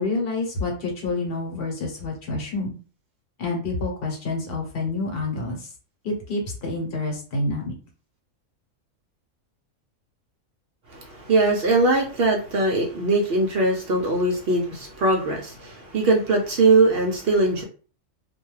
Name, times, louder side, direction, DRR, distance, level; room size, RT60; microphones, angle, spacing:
voice 1, 0.0-2.7 3.4-5.7 6.0-7.7, left 2 dB, 50° left, 1 dB, 0.9 m, -28 dB
voice 2, 10.9-17.6, right 2 dB, 65° right, 1 dB, 0.5 m, -21 dB
2.3 x 2.2 x 3.1 m, 0.38 s
omnidirectional pair, 1.5 m